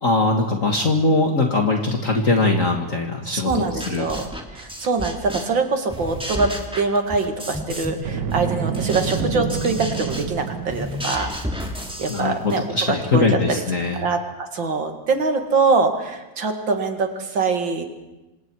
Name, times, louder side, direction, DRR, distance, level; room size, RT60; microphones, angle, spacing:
voice 1, 0.0-4.1 12.1-14.1, left 3 dB, 45° left, 2 dB, 2.2 m, -21 dB
voice 2, 3.3-11.3 12.0-12.6 13.1-13.6 14.0-17.8, right 4 dB, 85° right, 5 dB, 3.0 m, -23 dB
sound 1, 3.5-5.6 5.9-8.0 8.3-12.6, equal, 5° right, 2.6 m, -32 dB
Boom, 8.0-11.1, right 7 dB, 70° right, 1.7 m, -27 dB
27.5 x 26.0 x 4.8 m, 1.0 s
omnidirectional pair, 2.0 m